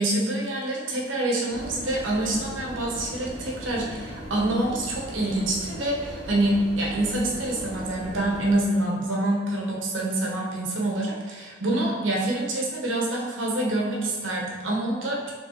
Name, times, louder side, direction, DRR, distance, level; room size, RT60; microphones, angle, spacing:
voice 1, 0.0-15.3, right 1 dB, 85° right, -3 dB, 1.0 m, -26 dB
sound 1, 1.5-8.5, equal, 60° left, 1.1 m, -38 dB
4.7 x 3.5 x 2.8 m, 1.4 s
head